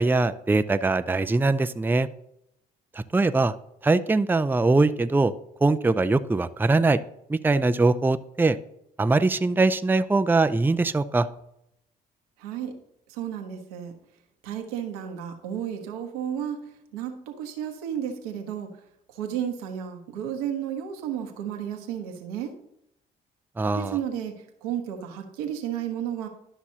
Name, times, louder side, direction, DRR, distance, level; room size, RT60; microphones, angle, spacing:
voice 1, 0.0-2.1 3.1-3.5 3.8-5.3 5.6-7.0 7.3-8.6 9.0-11.3 23.6-24.0, right 3 dB, 10° right, 11 dB, 0.5 m, -22 dB
voice 2, 12.4-12.7 13.1-13.9 14.4-16.6 16.9-18.7 19.1-22.5 23.8-24.3 24.6-26.3, right 9 dB, 90° right, 4 dB, 1.1 m, -32 dB
12.0 x 6.0 x 2.8 m, 0.77 s
hypercardioid pair, 55°, 19 cm